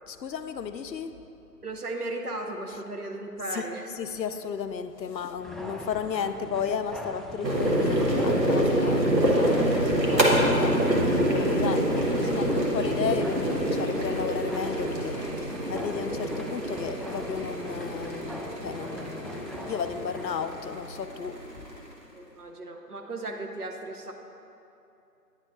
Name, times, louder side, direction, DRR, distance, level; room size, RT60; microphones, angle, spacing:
voice 1, 0.1-1.1 3.5-3.7 4.0-10.8 11.2-21.7, left 7 dB, 85° left, 10 dB, 0.5 m, -34 dB
voice 2, 1.6-3.8 22.1-24.1, right 2 dB, 65° right, 2 dB, 0.8 m, -36 dB
sound 1, 5.4-20.7, equal, ahead, 0.3 m, -42 dB
sound 2, 7.4-21.9, right 1 dB, 85° right, 1.4 m, -26 dB
9.8 x 5.6 x 2.5 m, 2.8 s
figure-of-eight pair, 170°, 49 cm